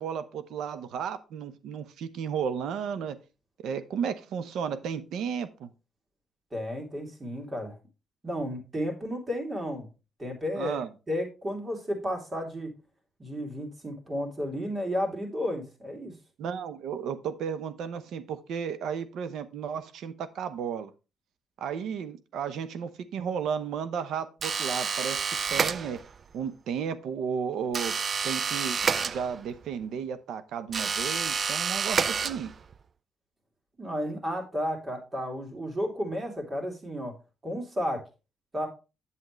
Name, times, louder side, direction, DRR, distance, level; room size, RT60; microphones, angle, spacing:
voice 1, 0.0-3.2 3.6-5.7 10.6-10.9 16.4-20.9 21.6-25.2 25.5-26.0 26.3-27.9 28.2-28.8 29.0-32.5, right 7 dB, 80° right, 13 dB, 0.8 m, -33 dB
voice 2, 6.5-7.8 8.2-9.9 10.2-10.8 11.1-12.7 13.2-16.1 33.8-37.1 37.4-38.0 38.5-38.7, equal, 30° right, 2 dB, 2.9 m, -32 dB
sound 1, 24.4-26.2 27.7-29.6 30.7-32.8, right 6 dB, 45° right, 0.4 m, -29 dB
8.3 x 7.6 x 3.2 m, 0.30 s
cardioid pair, 90°, 0 cm